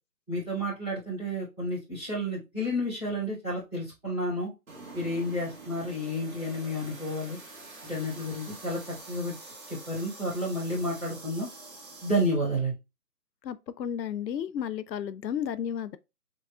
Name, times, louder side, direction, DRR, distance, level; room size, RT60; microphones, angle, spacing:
voice 1, 0.3-4.5 4.9-7.4 7.9-9.3 9.7-11.5 12.0-12.7, equal, 5° right, 2.4 m, -31 dB
sound 1, 4.7-12.4, right 3 dB, 55° right, 1.9 m, -46 dB
voice 2, 13.4-16.0, left 9 dB, 90° left, 0.6 m, -33 dB
5.1 x 3.9 x 2.3 m
figure-of-eight pair, 170°, 49 cm